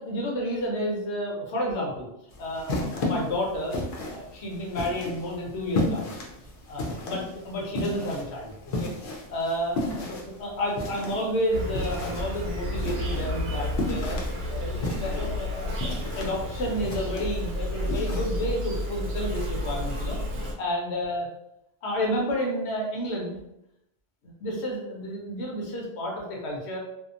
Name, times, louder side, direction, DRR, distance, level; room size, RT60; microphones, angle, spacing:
voice 1, 0.0-2.1 2.4-6.1 6.7-8.5 8.8-8.9 9.3-21.3 21.8-23.4 24.4-26.8, equal, 85° left, -2 dB, 1.0 m, -31 dB
sound 1, 2.3-18.5, left 2 dB, 65° left, 0.7 m, -34 dB
Insect, 11.5-20.5, left 1 dB, 75° right, 0.8 m, -31 dB
2.7 x 2.1 x 2.5 m, 0.82 s
omnidirectional pair, 1.1 m